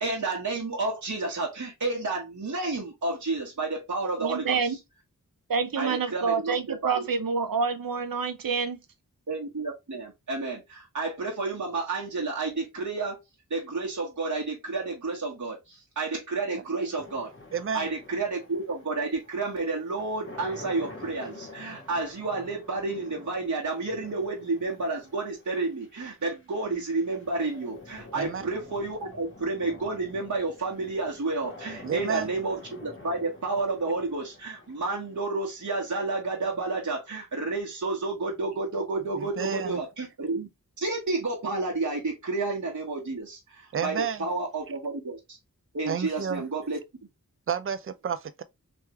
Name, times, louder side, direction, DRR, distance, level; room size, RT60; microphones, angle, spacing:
voice 1, 0.0-4.7 5.8-7.1 9.3-13.2 13.5-17.3 17.7-40.5 40.8-45.4 45.7-46.8, right 3 dB, 55° right, 1.2 m, -31 dB
voice 2, 4.2-4.8 5.5-8.8, right 5 dB, 70° right, 0.7 m, -27 dB
sound 1, 17.0-36.0, left 2 dB, 35° left, 1.4 m, -48 dB
voice 3, 17.5-17.9 28.1-28.5 31.8-32.3 39.2-39.8 43.7-44.3 45.9-46.4 47.5-48.4, right 7 dB, 40° right, 0.4 m, -31 dB
3.5 x 3.1 x 2.9 m
wide cardioid pair, 65°, 35 cm